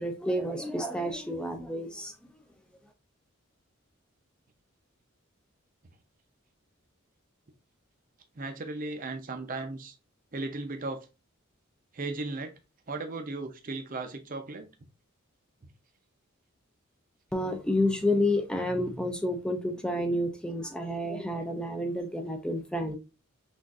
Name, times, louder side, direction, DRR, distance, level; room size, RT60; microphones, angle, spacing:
voice 1, 0.0-2.1 17.3-23.0, left 1 dB, 5° left, 0.4 m, -30 dB
voice 2, 8.4-10.0 10.3-11.1 11.9-12.5 12.9-14.7, right 3 dB, 40° right, 0.6 m, -36 dB
5.9 x 2.5 x 2.5 m
head